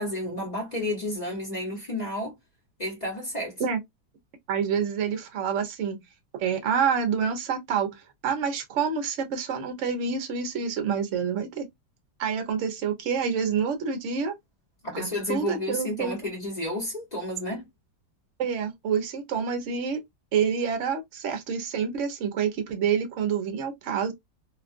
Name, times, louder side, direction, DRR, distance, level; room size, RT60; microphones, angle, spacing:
voice 1, 0.0-2.3 2.8-3.6 14.8-17.7, left 1 dB, 30° left, 0.9 m, -31 dB
voice 2, 4.5-6.0 6.3-8.0 8.2-11.7 12.2-14.3 14.9-16.1 18.4-20.0 20.3-24.1, right 6 dB, 55° right, 0.9 m, -27 dB
3.0 x 2.3 x 2.4 m
omnidirectional pair, 1.9 m